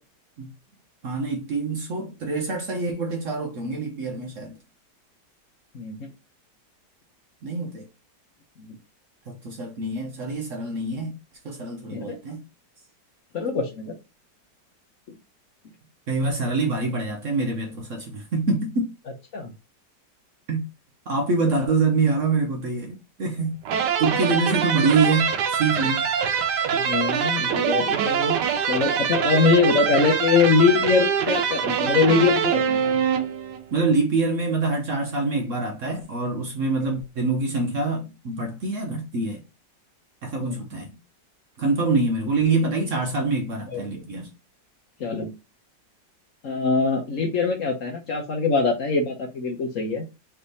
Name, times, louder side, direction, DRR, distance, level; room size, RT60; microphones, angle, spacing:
voice 1, 1.0-4.5 7.4-7.9 9.3-11.2 11.4-12.4 16.1-18.9 20.5-20.7 21.1-23.6 24.0-26.0 33.7-39.4 40.2-40.9 41.6-44.3, right 3 dB, 60° right, 0.9 m, -25 dB
voice 2, 5.7-6.1 8.6-8.7 11.9-12.2 13.3-13.9 19.3-19.5 26.7-28.4 28.7-32.8 40.4-40.6 43.7-43.8 45.0-45.3 46.4-50.0, left 4 dB, 55° left, 1.0 m, -23 dB
sound 1, 23.6-33.6, right 7 dB, 75° right, 1.2 m, -24 dB
3.4 x 3.3 x 4.0 m
omnidirectional pair, 1.9 m